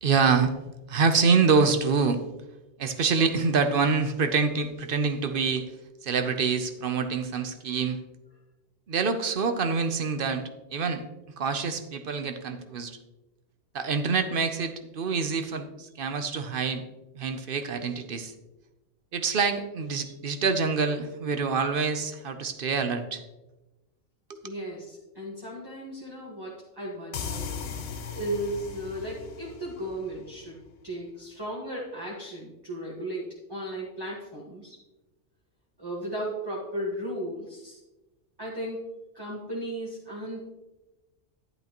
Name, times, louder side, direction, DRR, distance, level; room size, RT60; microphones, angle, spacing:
voice 1, 0.0-0.5 0.9-2.2 2.8-5.7 6.0-8.0 8.9-10.4 10.7-11.0 11.4-13.0 13.7-16.8 17.1-18.3 19.1-23.2 24.3-24.5, right 5 dB, 50° right, 9 dB, 0.8 m, -26 dB
voice 2, 24.4-27.5 28.1-30.6 30.8-34.8 35.8-37.8 38.4-40.4, right 1 dB, 20° right, -5 dB, 1.4 m, -35 dB
sound 1, 27.1-30.7, left 6 dB, 75° left, 1.1 m, -38 dB
10.5 x 8.9 x 2.9 m, 1.1 s
omnidirectional pair, 1.3 m